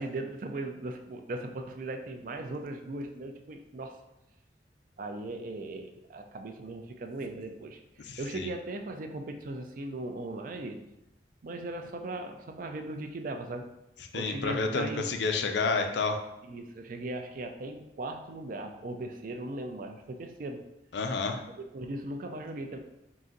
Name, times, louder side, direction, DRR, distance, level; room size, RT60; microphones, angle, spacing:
voice 1, 0.0-4.0 5.0-10.8 11.4-13.7 14.1-15.1 16.5-20.6 21.5-22.8, right 2 dB, 50° right, 5 dB, 0.4 m, -38 dB
voice 2, 8.1-8.5 14.1-16.2 20.9-21.4, left 4 dB, 75° left, 5 dB, 0.5 m, -30 dB
3.8 x 2.5 x 3.9 m, 0.89 s
head